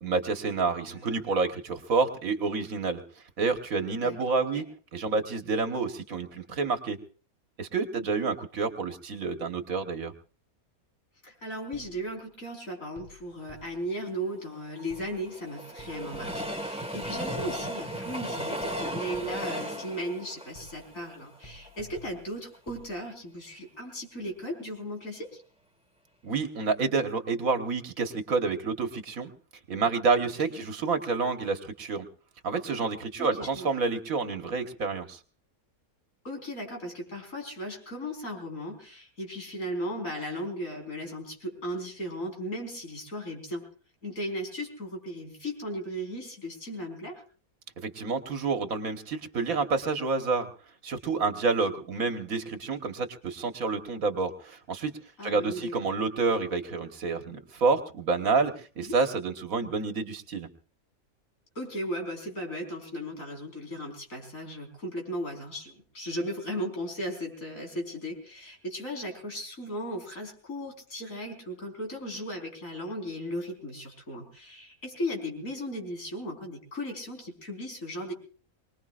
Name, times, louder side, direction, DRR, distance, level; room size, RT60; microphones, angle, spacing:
voice 1, 0.0-3.0 3.4-4.7 4.9-7.0 7.6-10.1 26.2-29.3 29.7-32.1 32.4-35.2 47.8-50.5 50.8-54.9 55.2-60.5, right 4 dB, 70° right, 5 dB, 1.8 m, -28 dB
voice 2, 4.0-4.6 11.2-25.3 33.2-33.7 36.2-43.6 44.0-47.2 55.2-55.7 58.8-59.0 61.5-78.1, equal, 65° left, 2 dB, 4.9 m, -36 dB
sound 1, 11.7-12.2 13.0-14.0 14.9-15.4 15.8-17.9 18.6-19.7 20.5-21.1 21.4-22.9, equal, 25° left, 2.3 m, -51 dB
Train, 14.5-21.7 22.2-22.3 22.5-22.6, equal, 5° right, 1.6 m, -36 dB
24.0 x 20.5 x 2.5 m, 0.39 s
omnidirectional pair, 1.5 m